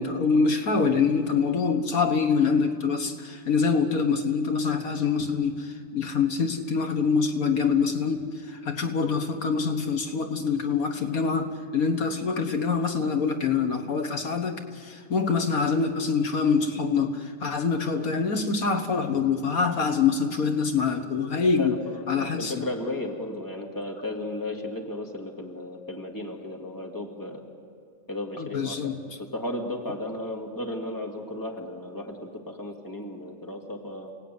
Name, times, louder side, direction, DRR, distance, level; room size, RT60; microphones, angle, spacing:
voice 1, 0.0-21.7 22.1-22.6 28.4-29.0, left 5 dB, 80° left, 6 dB, 1.9 m, -25 dB
voice 2, 21.6-27.4 28.1-28.8 29.2-34.1, left 1 dB, 15° left, 1 dB, 2.7 m, -34 dB
29.0 x 18.5 x 9.6 m, 2.2 s
omnidirectional pair, 1.5 m